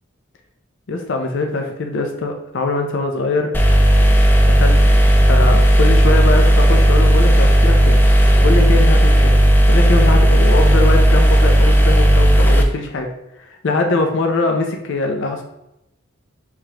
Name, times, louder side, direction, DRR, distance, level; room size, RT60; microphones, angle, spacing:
voice 1, 0.9-3.5 4.4-4.8 5.2-8.0 8.4-9.3 9.7-13.1 13.4-15.4, left 3 dB, 65° left, 3 dB, 0.5 m, -22 dB
sound 1, 3.5-12.6, equal, 10° left, 0.4 m, -12 dB
4.8 x 3.5 x 2.8 m, 0.85 s
head